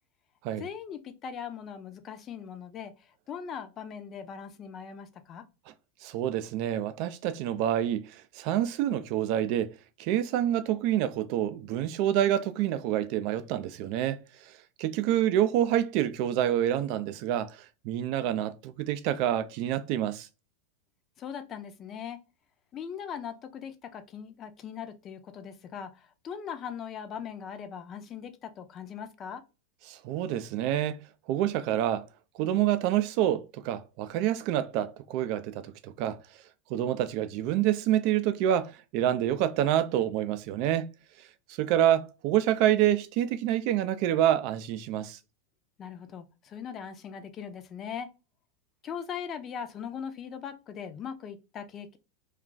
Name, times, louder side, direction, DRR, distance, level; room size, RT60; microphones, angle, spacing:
voice 1, 0.6-2.9 3.3-5.4 21.2-22.2 22.7-29.4 45.8-48.1 48.8-52.0, left 7 dB, 35° left, 0.5 m, -40 dB
voice 2, 6.0-9.7 10.0-14.2 14.8-20.3 29.9-31.0 31.3-32.0 32.4-36.2 36.7-40.9 41.5-45.2, right 11 dB, 50° right, 0.4 m, -27 dB
2.4 x 2.3 x 3.8 m
hypercardioid pair, 95°, 0 cm